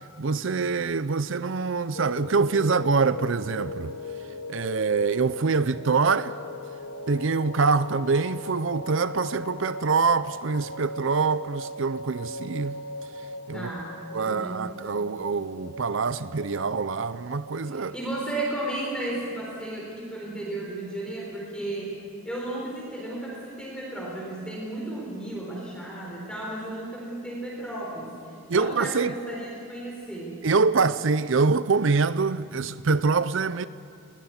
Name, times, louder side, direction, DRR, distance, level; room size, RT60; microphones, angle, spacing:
voice 1, 0.2-3.9 4.5-6.4 7.1-12.8 13.5-13.7 14.1-17.9 28.5-29.1 30.4-33.7, right 4 dB, 60° right, 0.6 m, -25 dB
sound 1, 1.9-19.3, left 2 dB, 80° left, 1.9 m, -39 dB
voice 2, 13.5-14.6 17.7-22.0 22.2-30.4, right 1 dB, 5° left, 4.3 m, -34 dB
21.5 x 18.5 x 9.7 m
head